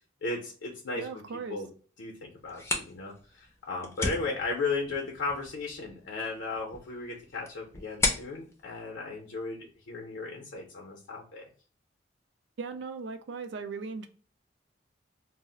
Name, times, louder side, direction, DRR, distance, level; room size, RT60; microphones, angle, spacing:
voice 1, 0.2-1.2 1.5-1.7 2.0-11.5, left 3 dB, 75° left, 0 dB, 0.5 m, -35 dB
voice 2, 1.0-1.6 12.6-14.1, right 5 dB, 65° right, 8 dB, 0.4 m, -38 dB
sound 1, 2.4-9.9, left 2 dB, 15° left, 0.4 m, -37 dB
2.4 x 2.0 x 3.7 m, 0.42 s
head